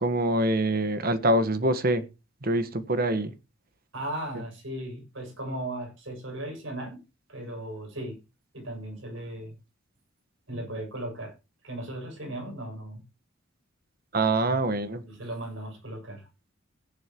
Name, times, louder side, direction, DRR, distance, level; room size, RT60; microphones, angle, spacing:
voice 1, 0.0-2.0 2.4-3.3 14.1-15.0, right 1 dB, 45° right, 1.4 m, -25 dB
voice 2, 3.9-7.0 7.3-8.2 8.5-9.6 10.5-11.3 11.6-13.0 14.5-14.6 15.0-16.3, right 1 dB, 70° right, 6.7 m, -37 dB
16.0 x 10.5 x 3.0 m
head